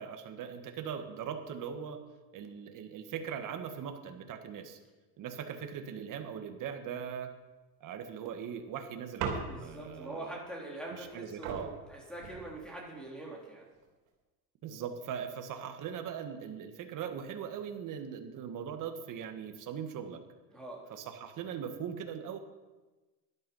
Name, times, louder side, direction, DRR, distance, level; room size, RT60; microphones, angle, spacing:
voice 1, 0.0-2.0 2.3-4.8 5.2-7.3 7.8-10.4 10.9-11.7 14.6-20.2 20.9-22.4, right 8 dB, 40° right, 6 dB, 1.8 m, -40 dB
sound 1, 9.2-9.9 11.0-11.1 11.4-12.9 13.7-14.1, right 5 dB, 75° right, 3.8 m, -39 dB
voice 2, 9.4-13.7 20.5-21.0, right 1 dB, ahead, -3 dB, 3.8 m, -44 dB
12.5 x 12.0 x 5.7 m, 1.2 s
supercardioid pair, 125°, 48 cm